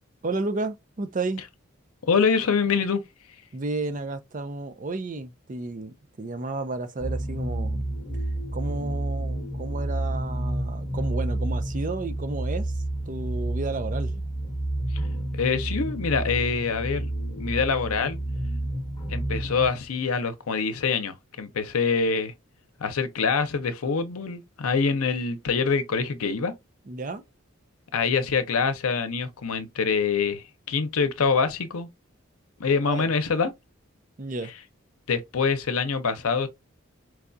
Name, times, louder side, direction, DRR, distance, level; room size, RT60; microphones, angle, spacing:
voice 1, 0.2-1.4 3.5-7.9 8.5-12.7 13.1-14.1 26.9-27.2 32.8-33.1 34.2-34.5, right 3 dB, 35° right, 0.5 m, -32 dB
voice 2, 2.1-3.0 15.3-17.1 17.4-18.2 19.1-22.3 22.8-26.5 27.9-31.9 32.6-33.5 35.1-36.5, left 5 dB, 90° left, 0.7 m, -25 dB
sound 1, 7.0-19.7, right 1 dB, 20° left, 1.1 m, -30 dB
4.6 x 2.3 x 2.6 m
head